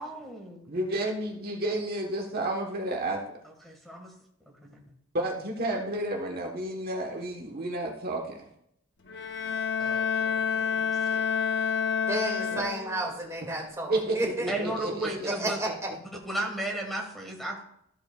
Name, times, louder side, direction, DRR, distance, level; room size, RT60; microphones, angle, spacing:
voice 1, 0.0-0.6 3.4-4.1 4.6-4.8 9.8-11.2 14.5-15.6 16.2-17.6, right 1 dB, ahead, 0 dB, 1.8 m, -35 dB
voice 2, 0.7-3.2 5.1-8.4 12.5-12.7 13.9-15.5, right 1 dB, 50° right, 0 dB, 1.2 m, -31 dB
Bowed string instrument, 9.1-13.1, left 7 dB, 60° left, 0.9 m, -29 dB
voice 3, 12.0-14.5 15.2-15.9, right 2 dB, 15° right, -1 dB, 2.3 m, -32 dB
14.0 x 7.6 x 2.4 m, 0.73 s
head